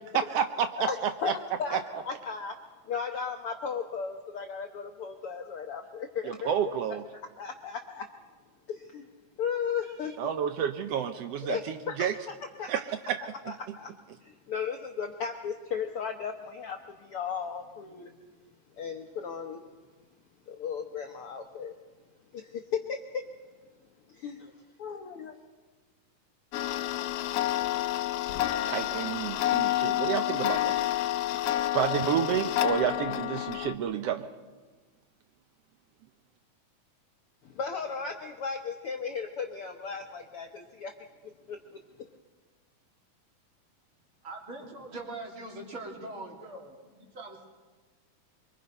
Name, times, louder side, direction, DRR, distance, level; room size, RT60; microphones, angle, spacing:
voice 1, 0.1-1.3 1.7-2.0 6.3-7.0 10.2-12.1 12.7-13.2 28.6-30.8 31.7-34.3, right 8 dB, 90° right, 9 dB, 1.3 m, -30 dB
voice 2, 1.2-2.5 2.9-6.5 7.4-8.0 8.7-9.0 9.4-10.1 11.4-12.7 13.5-13.9 14.2-18.1 18.8-19.6 20.5-21.7 22.3-23.0 24.1-24.5 24.8-25.3 37.4-40.9 41.5-41.8, left 6 dB, 65° left, 4 dB, 1.4 m, -35 dB
Tick-tock, 26.5-33.7, left 13 dB, 85° left, 1.3 m, -29 dB
voice 3, 44.2-47.5, right 2 dB, 40° right, 0 dB, 3.9 m, -42 dB
25.0 x 24.0 x 5.4 m, 1.4 s
omnidirectional pair, 3.8 m